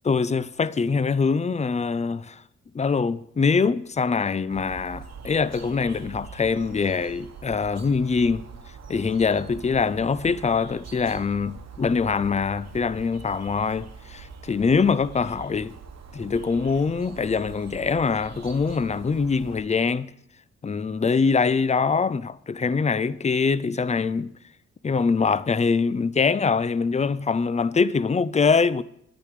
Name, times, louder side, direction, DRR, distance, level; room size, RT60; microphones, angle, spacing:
voice 1, 0.0-2.4 2.7-8.4 8.9-15.8 16.1-20.1 20.6-24.3 24.8-28.8, left 5 dB, 20° left, 0.5 m, -23 dB
sound 1, 4.5-19.6, right 5 dB, 55° right, 1.3 m, -43 dB
10.5 x 9.6 x 5.0 m
supercardioid pair, 50°, 32 cm